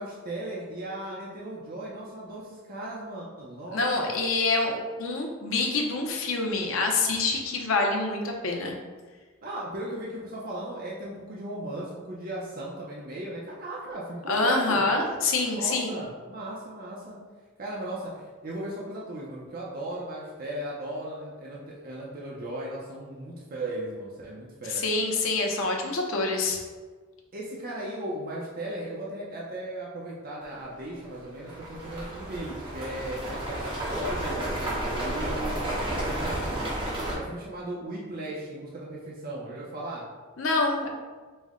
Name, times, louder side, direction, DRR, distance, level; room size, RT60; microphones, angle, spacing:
voice 1, 0.0-4.1 9.4-14.8 15.5-17.2 17.6-24.8 27.3-35.6 35.9-36.8 37.1-40.0, right 1 dB, 45° right, -5 dB, 0.6 m, -37 dB
voice 2, 3.7-8.7 14.3-15.9 24.7-26.6 40.4-40.9, left 3 dB, 75° left, 1 dB, 0.7 m, -26 dB
sound 1, 30.4-30.5 31.0-37.2, right 1 dB, 25° right, 1.0 m, -32 dB
5.2 x 2.1 x 3.6 m, 1.4 s
head